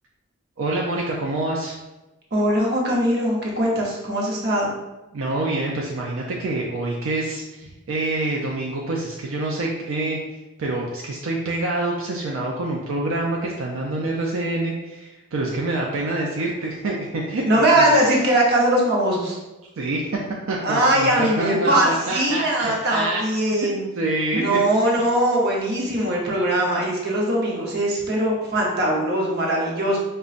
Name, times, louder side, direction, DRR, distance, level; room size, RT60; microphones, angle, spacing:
voice 1, 0.6-1.8 5.1-18.0 19.8-23.2 23.5-23.7 23.9-24.6 24.9-25.0, right 2 dB, 75° right, -2 dB, 0.4 m, -26 dB
voice 2, 2.3-4.7 17.4-19.4 20.6-23.8 24.3-30.0, right 1 dB, 50° right, -2 dB, 0.8 m, -21 dB
5.0 x 2.2 x 2.4 m, 1.0 s
head